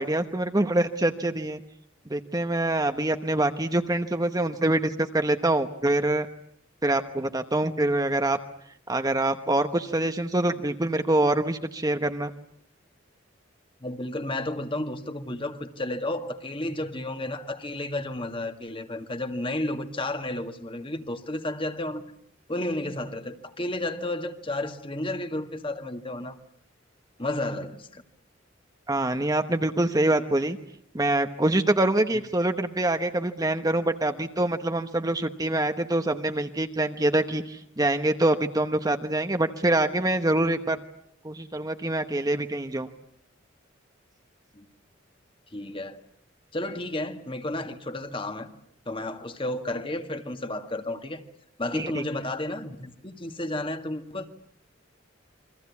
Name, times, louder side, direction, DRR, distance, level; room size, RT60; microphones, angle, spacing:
voice 1, 0.0-1.6 2.1-6.3 6.8-8.4 8.9-12.3 28.9-30.6 30.9-40.8 41.2-42.9 51.7-52.0, right 1 dB, 20° right, 1.1 m, -25 dB
voice 2, 13.8-22.1 22.5-26.3 27.2-28.0 44.5-44.7 45.5-46.0 46.5-48.5 48.9-51.2 51.6-54.3, left 1 dB, 25° left, 1.8 m, -32 dB
28.5 x 24.0 x 8.4 m
head